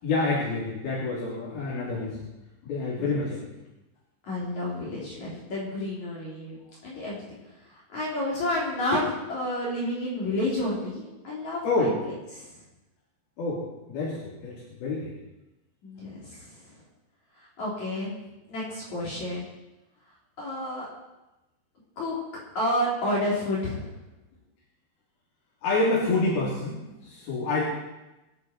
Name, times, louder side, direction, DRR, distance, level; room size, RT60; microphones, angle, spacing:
voice 1, 0.0-2.3 2.6-3.5 11.6-12.0 13.4-13.6 13.9-15.1 25.6-27.6, left 3 dB, 65° left, -7 dB, 5.3 m, -27 dB
voice 2, 4.3-6.6 6.8-7.2 7.9-11.9 15.8-16.4 17.6-18.2 18.5-19.5 20.4-20.9 22.0-22.2 22.5-23.9, left 1 dB, 45° left, -6 dB, 4.6 m, -30 dB
25.5 x 9.7 x 4.5 m, 1.0 s
omnidirectional pair, 4.7 m